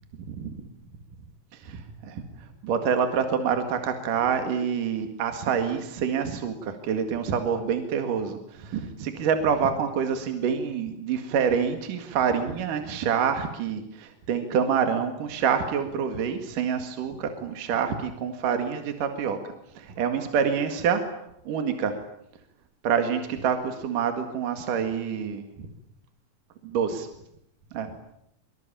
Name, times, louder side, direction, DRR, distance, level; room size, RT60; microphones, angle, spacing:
voice 1, 1.5-2.2 2.6-19.4 19.8-21.0 21.5-21.9 22.8-25.7 26.6-27.1 27.7-27.9, right 7 dB, 70° right, 7 dB, 3.5 m, -27 dB
24.5 x 24.5 x 8.7 m, 0.77 s
omnidirectional pair, 4.0 m